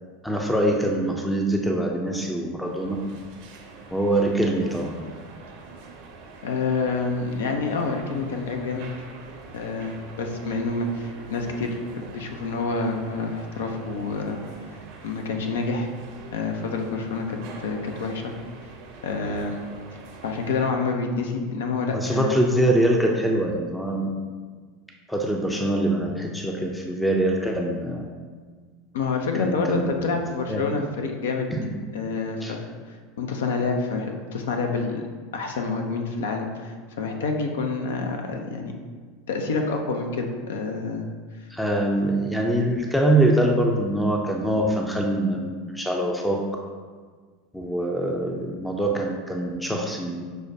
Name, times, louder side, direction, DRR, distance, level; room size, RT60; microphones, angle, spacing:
voice 1, 0.2-3.0 3.9-5.0 21.9-24.1 25.1-28.0 29.4-30.2 30.5-30.7 31.5-31.7 32.4-32.5 41.5-46.4 47.5-50.2, right 1 dB, 5° left, 1 dB, 0.4 m, -24 dB
sound 1, 2.6-20.7, right 4 dB, 60° right, 0.6 m, -44 dB
voice 2, 6.4-8.9 9.5-14.4 15.0-15.9 16.3-18.3 19.0-19.6 20.2-22.3 28.9-31.5 31.9-32.6 32.9-35.0 35.3-38.8 39.3-41.0, left 4 dB, 75° left, 3 dB, 0.4 m, -28 dB
6.2 x 2.1 x 2.6 m, 1.5 s
hypercardioid pair, 85°, 0 cm